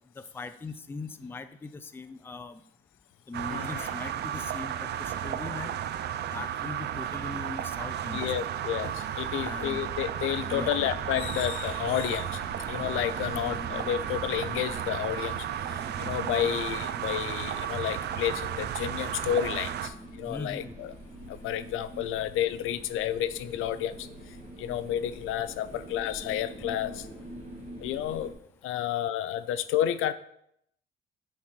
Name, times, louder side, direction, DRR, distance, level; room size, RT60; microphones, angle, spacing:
voice 1, 0.3-2.6 3.3-5.8 6.3-8.3 9.4-9.9 10.5-10.8 20.3-20.7, left 3 dB, 10° left, 11 dB, 0.4 m, -40 dB
sound 1, 3.3-19.9, right 10 dB, 55° right, 0.5 m, -34 dB
voice 2, 3.5-3.9 8.1-20.9 21.3-27.1 27.8-28.3 28.6-30.1, left 11 dB, 80° left, 14 dB, 0.5 m, -31 dB
sound 2, 9.1-28.3, right 1 dB, 35° right, 1.6 m, -45 dB
5.9 x 4.2 x 6.0 m, 0.74 s
cardioid pair, 135°, 21 cm